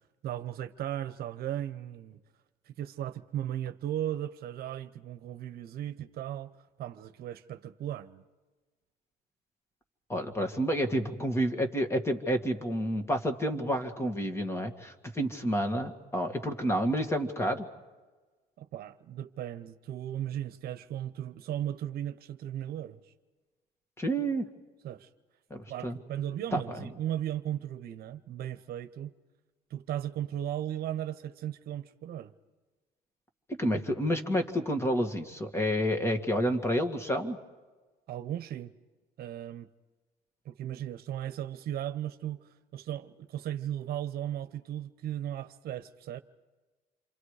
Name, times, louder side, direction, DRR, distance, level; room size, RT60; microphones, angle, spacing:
voice 1, 0.2-2.2 2.7-6.5 6.8-8.2 16.7-16.8 18.6-23.0 24.8-25.1 25.7-29.1 29.7-32.3 38.1-38.7 39.2-39.7 40.4-46.2, right 11 dB, 65° right, 0.9 m, -36 dB
voice 2, 10.1-17.7 24.0-24.5 25.5-26.0 26.5-26.8 33.6-37.4, equal, 15° left, 2.0 m, -29 dB
28.5 x 25.0 x 5.0 m
cardioid pair, 110°, 17 cm